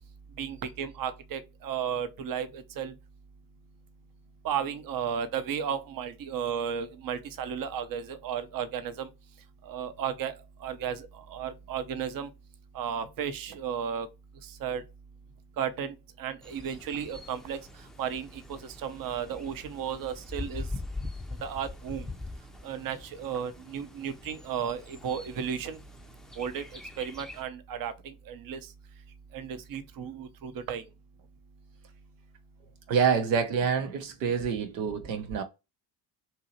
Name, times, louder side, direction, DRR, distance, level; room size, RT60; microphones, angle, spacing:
voice 1, 0.4-2.9 4.4-9.1 9.7-10.3 10.6-12.3 12.7-14.1 14.6-14.8 15.6-17.6 18.0-20.7 21.4-22.1 22.6-25.8 26.4-28.6 29.3-30.8, right 8 dB, 45° right, 0.7 m, -34 dB
Bird, 16.4-27.4, left 2 dB, ahead, 0.4 m, -43 dB
voice 2, 32.9-35.4, right 6 dB, 80° right, 0.8 m, -27 dB
2.8 x 2.7 x 2.7 m
hypercardioid pair, 60°, 49 cm